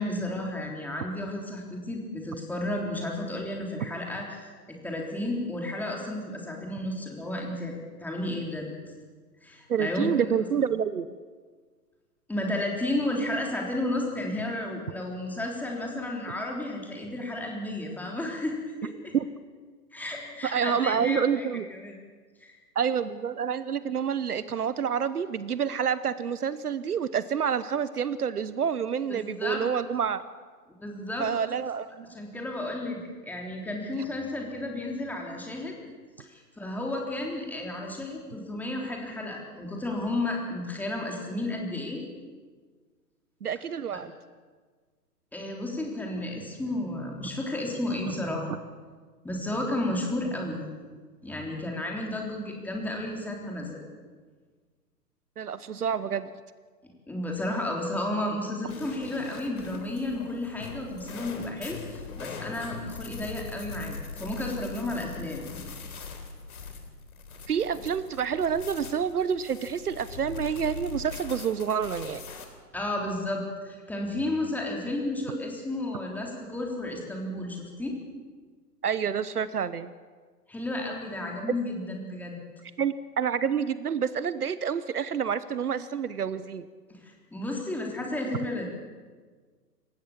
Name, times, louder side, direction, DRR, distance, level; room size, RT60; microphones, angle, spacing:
voice 1, 0.0-7.7 8.0-8.7 9.4-10.3 12.3-19.1 19.9-21.9 22.4-22.6 29.1-29.6 30.8-31.3 32.1-35.8 36.2-42.0 43.9-44.0 45.3-48.5 49.2-50.6 51.2-53.8 57.1-65.4 72.7-78.0 80.5-82.4 87.0-88.6, left 1 dB, 5° left, 0 dB, 3.4 m, -32 dB
voice 2, 9.7-11.1 19.1-19.3 20.4-21.7 22.7-30.2 31.2-32.1 43.4-44.1 55.4-56.3 67.5-72.2 78.8-79.9 82.8-86.7, right 7 dB, 65° right, 15 dB, 1.0 m, -28 dB
sound 1, 58.7-72.5, left 4 dB, 60° left, 3.7 m, -41 dB
27.0 x 15.0 x 7.2 m, 1.5 s
figure-of-eight pair, 120°, 49 cm